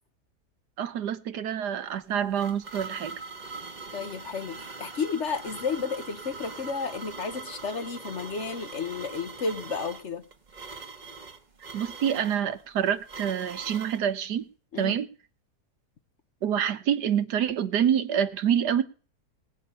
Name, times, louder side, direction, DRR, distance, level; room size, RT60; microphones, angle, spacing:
voice 1, 0.8-3.2 11.7-14.5 14.8-15.1 16.4-18.8, right 9 dB, 80° right, 1.5 m, -27 dB
sound 1, 1.9-14.0, right 4 dB, 30° right, 1.2 m, -42 dB
voice 2, 3.9-10.2 14.7-15.0, left 5 dB, 50° left, 1.1 m, -32 dB
19.0 x 8.5 x 5.5 m
omnidirectional pair, 1.7 m